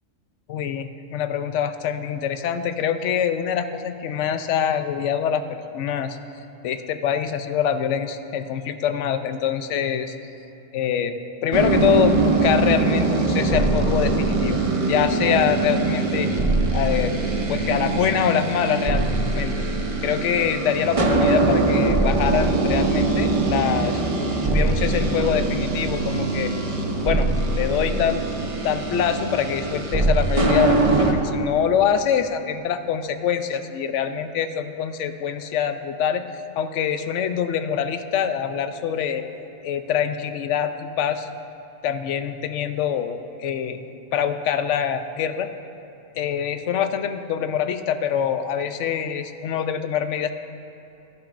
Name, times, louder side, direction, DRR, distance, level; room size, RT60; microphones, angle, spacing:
voice 1, 0.5-6.2 6.6-10.2 10.7-11.1 11.4-16.3 16.7-17.1 17.5-19.1 19.3-19.5 20.0-26.5 27.0-27.3 27.6-28.3 28.6-36.2 36.6-39.2 39.6-41.3 41.8-43.8 44.1-45.5 46.1-50.3, left 8 dB, 75° left, 9 dB, 0.9 m, -24 dB
sound 1, 11.5-31.1, right 2 dB, 30° right, 0.8 m, -22 dB
16.0 x 11.5 x 2.5 m, 2.8 s
omnidirectional pair, 1.3 m